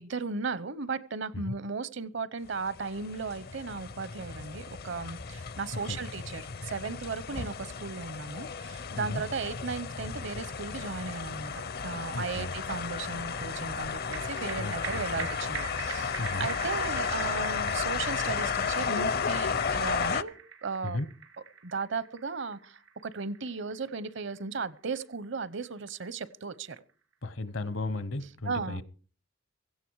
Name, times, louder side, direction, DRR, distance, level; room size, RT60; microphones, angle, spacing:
voice 1, 0.0-11.5 11.8-20.4 20.6-21.0 21.6-26.8 28.4-28.8, right 4 dB, 65° right, 0.9 m, -36 dB
sound 1, 2.6-20.2, left 6 dB, 50° left, 0.7 m, -33 dB
voice 2, 12.1-12.5 14.6-15.3 16.2-16.5 20.8-21.1 27.2-28.8, left 2 dB, 70° left, 1.1 m, -35 dB
sound 2, 13.9-26.6 26.9-27.0, right 6 dB, 90° right, 4.4 m, -44 dB
17.0 x 15.5 x 4.8 m
head